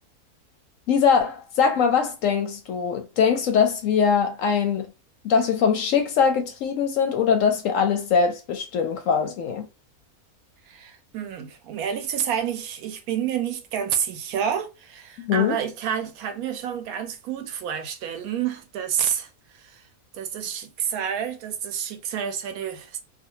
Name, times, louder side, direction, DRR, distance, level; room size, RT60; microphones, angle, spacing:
voice 1, 0.9-4.9 5.2-9.7 15.2-15.6, left 6 dB, 70° left, 0.8 m, -22 dB
voice 2, 10.6-19.8 20.1-23.0, right 8 dB, 75° right, 1.0 m, -29 dB
2.6 x 2.4 x 2.7 m
omnidirectional pair, 1.6 m